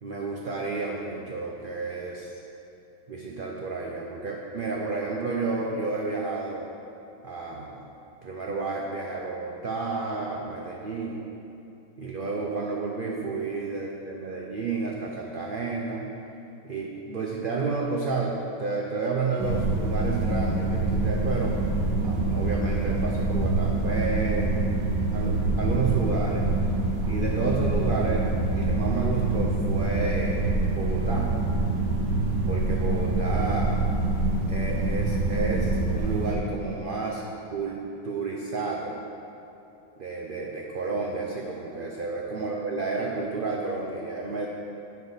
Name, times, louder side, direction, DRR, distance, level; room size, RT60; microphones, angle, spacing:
voice 1, 0.0-2.3 3.1-6.7 7.2-7.8 8.2-11.2 12.0-16.1 16.6-21.6 22.0-24.7 25.1-26.4 27.1-28.2 28.5-31.3 32.5-33.8 34.5-37.2 37.5-39.0 40.0-44.5, right 4 dB, 65° right, -1 dB, 0.5 m, -31 dB
sound 1, 19.4-36.4, right 2 dB, 90° right, 1.6 m, -25 dB
9.3 x 4.9 x 5.5 m, 2.8 s
omnidirectional pair, 1.8 m